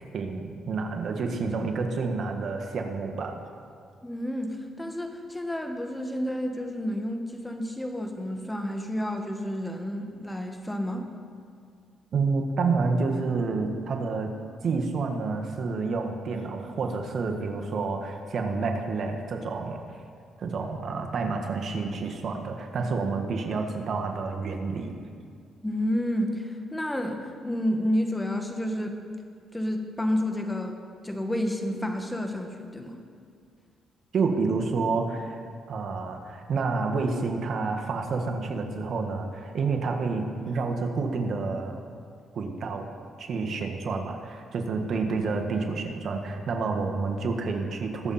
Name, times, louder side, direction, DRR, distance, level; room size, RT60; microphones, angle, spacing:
voice 1, 0.1-3.4 12.1-14.3 14.6-19.8 20.4-24.9 34.1-35.4 35.7-41.8 42.3-42.9 43.2-48.1, right 4 dB, 55° right, 3 dB, 1.6 m, -29 dB
voice 2, 4.0-11.1 25.6-28.9 29.5-30.8 31.0-33.0, left 1 dB, 10° left, 4 dB, 1.5 m, -30 dB
22.0 x 7.5 x 4.3 m, 2.2 s
cardioid pair, 90°, 0 cm